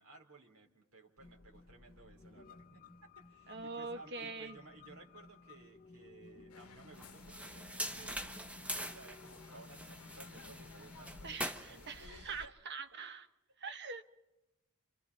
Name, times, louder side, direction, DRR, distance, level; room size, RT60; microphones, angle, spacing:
voice 1, 0.0-2.8 3.2-8.4 8.7-12.6, right 3 dB, 85° right, 1 dB, 3.7 m, -58 dB
sound 1, 1.2-11.4, left 3 dB, 40° left, 0.7 m, -57 dB
voice 2, 3.5-4.6 11.2-13.3 13.6-14.0, right 4 dB, 50° right, 8 dB, 1.2 m, -44 dB
sound 2, 6.5-12.5, left 4 dB, 85° left, 0.8 m, -57 dB
sound 3, 7.0-12.0, equal, 5° right, 1.1 m, -44 dB
29.5 x 27.0 x 4.1 m, 0.99 s
head